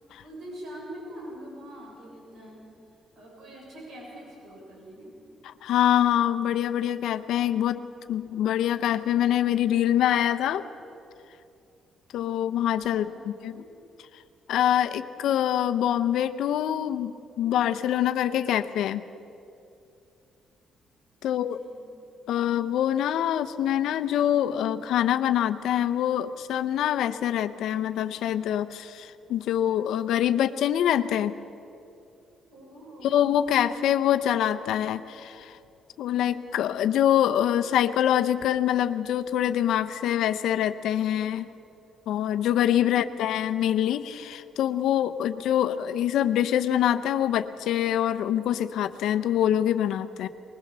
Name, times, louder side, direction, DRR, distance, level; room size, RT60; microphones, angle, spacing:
voice 1, 0.2-2.7 3.1-5.2 12.9-13.7 21.3-21.9 32.5-33.2 42.8-43.3, equal, 65° right, -2 dB, 6.8 m, -44 dB
voice 2, 5.7-10.6 12.1-13.6 14.5-19.0 21.2-21.6 22.3-31.3 33.0-35.6 36.0-41.5 42.1-50.3, left 11 dB, 80° left, 11 dB, 0.7 m, -25 dB
21.0 x 20.5 x 6.8 m, 2.7 s
cardioid pair, 105°, 0 cm